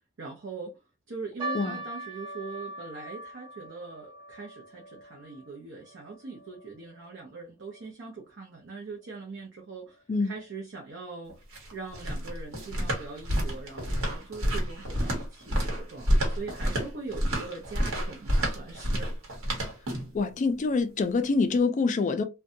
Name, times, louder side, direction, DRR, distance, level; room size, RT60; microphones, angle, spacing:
voice 1, 0.2-0.8 1.1-11.4 11.7-19.1, right 4 dB, 60° right, 0.6 m, -42 dB
sound 1, 1.4-7.9 8.1-8.2 9.0-9.3 9.9-10.0 10.3-10.5, right 1 dB, 25° right, 0.8 m, -42 dB
sound 2, 11.3-20.2, equal, 75° right, 1.0 m, -29 dB
voice 2, 20.1-22.2, left 4 dB, 35° left, 0.3 m, -25 dB
2.6 x 2.2 x 2.6 m
head